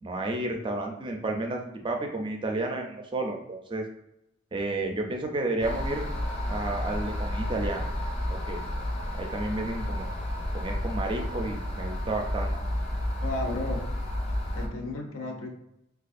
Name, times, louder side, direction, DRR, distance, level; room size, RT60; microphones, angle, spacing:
voice 1, 0.0-3.8 4.5-6.0 6.5-7.9 8.5-8.6 9.2-10.1 10.5-12.5, right 2 dB, 25° right, 2 dB, 0.4 m, -31 dB
sound 1, 5.6-14.7, left 1 dB, 30° left, 0.6 m, -31 dB
voice 2, 13.2-13.9 14.5-15.5, left 2 dB, 85° left, 2 dB, 0.7 m, -34 dB
4.9 x 2.3 x 2.5 m, 0.84 s
head